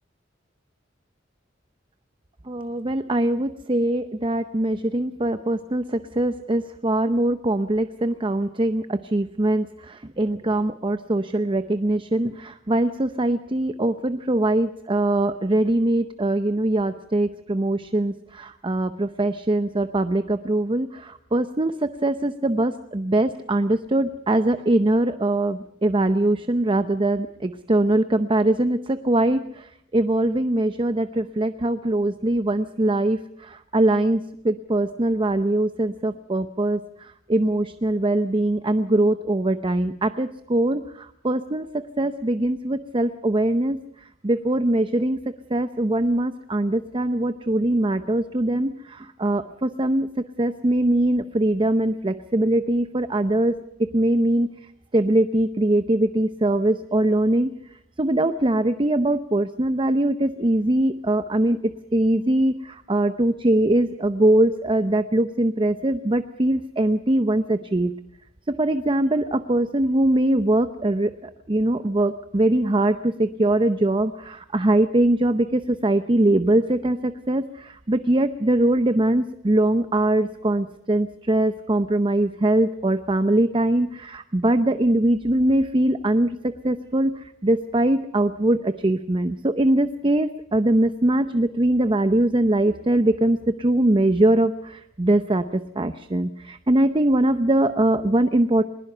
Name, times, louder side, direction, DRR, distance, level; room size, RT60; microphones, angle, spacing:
voice 1, 2.5-43.8 44.2-45.2 45.5-50.1 50.4-54.5 54.9-57.5 58.0-67.9 68.5-98.6, right 1 dB, 25° right, 10 dB, 0.7 m, -22 dB
21.0 x 20.5 x 6.8 m, 0.74 s
head